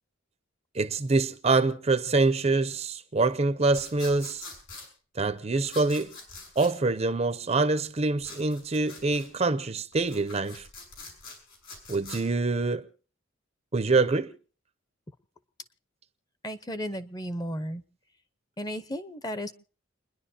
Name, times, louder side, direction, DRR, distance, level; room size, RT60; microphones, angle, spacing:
voice 1, 0.7-4.5 5.2-6.1 6.6-10.7 11.9-12.9 13.7-14.3, right 3 dB, 30° right, 0.6 m, -25 dB
sound 1, 3.7-4.9 5.6-6.7 8.2-9.3 9.9-12.2, left 3 dB, 85° left, 6.6 m, -44 dB
voice 2, 16.4-17.8 18.6-19.5, equal, 20° left, 0.8 m, -34 dB
30.0 x 10.5 x 2.8 m
head